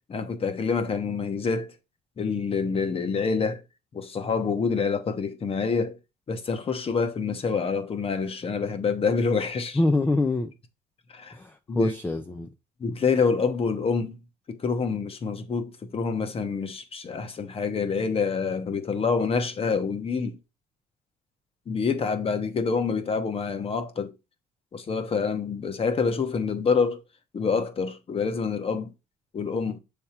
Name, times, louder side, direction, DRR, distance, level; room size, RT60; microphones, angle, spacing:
voice 1, 0.1-1.7 2.2-3.6 3.9-6.0 6.3-9.8 11.1-11.4 11.7-11.9 12.8-14.2 14.5-20.4 21.7-24.1 24.7-27.0 27.3-28.9 29.3-29.8, left 5 dB, 35° left, 1.0 m, -27 dB
voice 2, 9.7-10.5 11.3-12.5, left 2 dB, 10° left, 0.5 m, -25 dB
6.9 x 3.5 x 4.3 m
cardioid pair, 110°, 17 cm